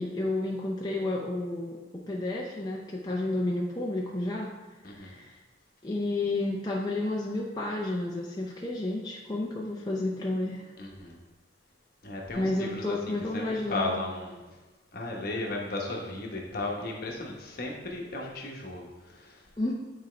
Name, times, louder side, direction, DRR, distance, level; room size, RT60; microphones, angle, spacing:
voice 1, 0.0-4.5 4.9-5.4 5.8-10.7 12.4-13.9 19.6-19.7, left 2 dB, 20° left, -3 dB, 0.5 m, -31 dB
voice 2, 4.8-5.2 10.8-11.2 12.0-14.4 14.9-19.4, left 2 dB, 50° left, -1 dB, 1.1 m, -35 dB
8.9 x 4.2 x 3.2 m, 1.2 s
head